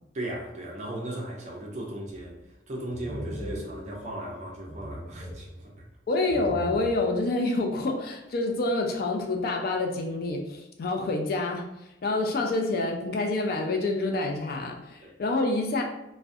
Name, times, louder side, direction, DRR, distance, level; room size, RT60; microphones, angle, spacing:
voice 1, 0.1-2.4 2.7-5.9 15.0-15.1, right 1 dB, 35° right, -1 dB, 0.5 m, -37 dB
sound 1, 2.1-2.5 2.9-4.4 4.6-6.0 6.3-7.3, equal, 5° right, 1.1 m, -40 dB
voice 2, 6.1-11.6 12.0-15.8, left 2 dB, 50° left, 2 dB, 0.3 m, -27 dB
2.3 x 2.1 x 2.5 m, 0.90 s
head